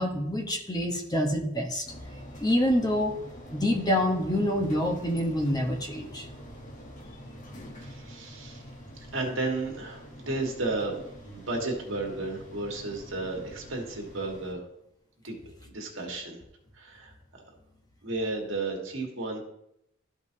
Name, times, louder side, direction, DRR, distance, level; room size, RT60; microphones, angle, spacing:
voice 1, 0.0-1.9 2.4-3.2 3.5-6.3, equal, 20° left, 1 dB, 1.0 m, -26 dB
sound 1, 1.8-14.5, equal, 40° left, 1.2 m, -46 dB
voice 2, 7.8-8.6 9.1-14.7 15.2-15.4 15.7-16.4 16.7-17.4 18.0-19.4, right 2 dB, 70° right, 1 dB, 1.7 m, -33 dB
13.0 x 5.2 x 2.8 m, 0.79 s
head